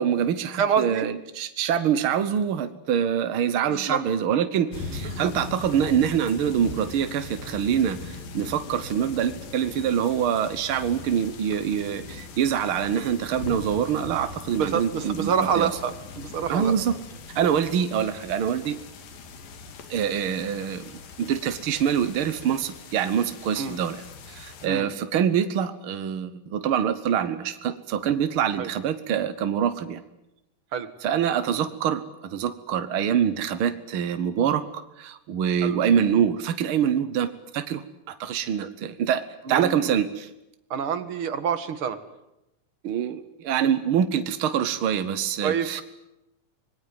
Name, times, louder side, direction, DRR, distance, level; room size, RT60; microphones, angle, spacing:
voice 1, 0.0-15.7 16.5-16.9 17.3-18.8 19.9-20.9 21.2-30.0 31.0-40.3 42.8-45.8, right 8 dB, 70° right, 11 dB, 1.3 m, -25 dB
voice 2, 0.6-1.1 3.7-4.0 5.0-5.3 14.6-16.7 23.6-23.8 24.7-24.9 28.6-28.7 30.7-30.9 35.6-35.8 38.6-38.7 39.5-40.0 40.7-42.0 45.4-45.8, right 7 dB, 45° right, 10 dB, 2.1 m, -27 dB
sound 1, 4.7-24.7, left 4 dB, 90° left, 4.1 m, -40 dB
26.0 x 21.0 x 9.6 m, 0.89 s
omnidirectional pair, 3.9 m